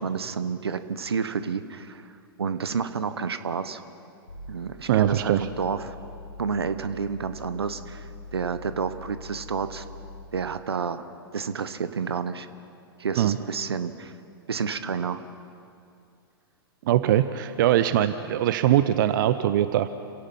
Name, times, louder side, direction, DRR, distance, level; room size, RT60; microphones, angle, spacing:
voice 1, 0.0-3.8 4.5-6.0 6.4-9.8 10.3-11.1 11.3-12.5 13.0-14.1 14.5-15.2, right 6 dB, 80° right, 12 dB, 1.1 m, -30 dB
sound 1, 4.3-10.5, left 2 dB, 80° left, 4.0 m, -43 dB
voice 2, 4.9-5.5 13.2-13.4 16.8-19.9, right 12 dB, 55° right, 12 dB, 0.7 m, -22 dB
28.5 x 17.0 x 5.5 m, 2.4 s
figure-of-eight pair, 105°, 13 cm